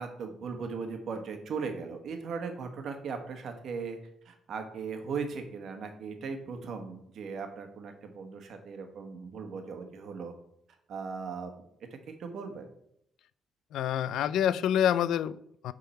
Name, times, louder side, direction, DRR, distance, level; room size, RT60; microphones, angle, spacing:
voice 1, 0.0-4.0 4.2-10.3 10.9-11.5 12.2-12.7, right 5 dB, 65° right, 1.3 m, -38 dB
voice 2, 13.7-15.7, left 10 dB, 80° left, 0.3 m, -27 dB
8.8 x 3.8 x 4.2 m
cardioid pair, 90°, 0 cm